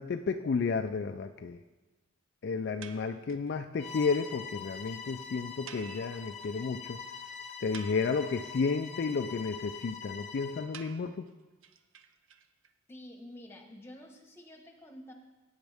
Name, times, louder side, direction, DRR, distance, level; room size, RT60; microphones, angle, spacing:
voice 1, 0.0-1.6 2.4-7.0 7.6-11.3, left 4 dB, 50° left, 7 dB, 0.3 m, -32 dB
sound 1, 2.8-3.5 3.9-4.0 4.1-4.3 4.5-4.6 4.8-4.9 5.7-6.7 7.0-7.1 7.5-8.5 10.7-12.7, right 7 dB, 65° right, 0.6 m, -50 dB
Bowed string instrument, 3.8-10.7, left 6 dB, 30° left, 0.7 m, -44 dB
voice 2, 12.9-15.1, left 1 dB, 10° left, 3 dB, 1.2 m, -49 dB
14.5 x 8.9 x 3.5 m, 1.2 s
head